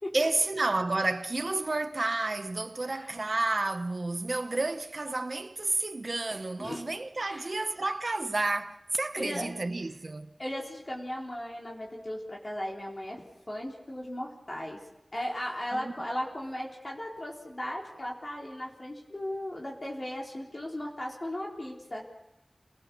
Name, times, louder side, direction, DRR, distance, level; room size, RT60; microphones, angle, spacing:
voice 1, 0.1-10.3 15.7-15.9, right 2 dB, 60° right, 1.0 m, -30 dB
voice 2, 2.8-3.1 6.6-6.8 7.2-7.5 9.1-9.5 10.4-13.2 13.5-14.8 15.1-22.1, left 1 dB, 45° left, 3.7 m, -37 dB
29.0 x 19.0 x 7.0 m
wide cardioid pair, 65°, 0 cm